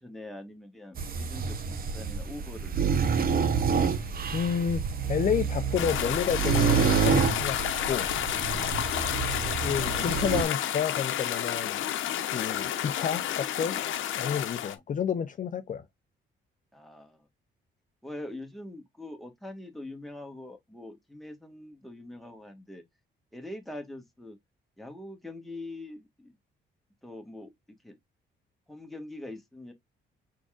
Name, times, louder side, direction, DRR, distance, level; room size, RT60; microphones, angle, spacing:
voice 1, 0.0-2.8 3.1-3.7 9.3-10.1 16.7-17.2 18.0-22.8 23.3-24.4 24.8-26.3 27.0-27.5 27.8-28.0 28.7-29.7, left 1 dB, ahead, 1.3 m, -43 dB
sound 1, 1.0-10.4, right 6 dB, 45° right, 0.8 m, -28 dB
voice 2, 4.0-4.8 5.1-8.1 9.6-11.8 12.3-13.8 14.2-15.8, left 8 dB, 40° left, 0.5 m, -30 dB
sound 2, 5.8-14.7, left 11 dB, 75° left, 0.8 m, -31 dB
4.7 x 3.9 x 2.4 m
cardioid pair, 90°, 20 cm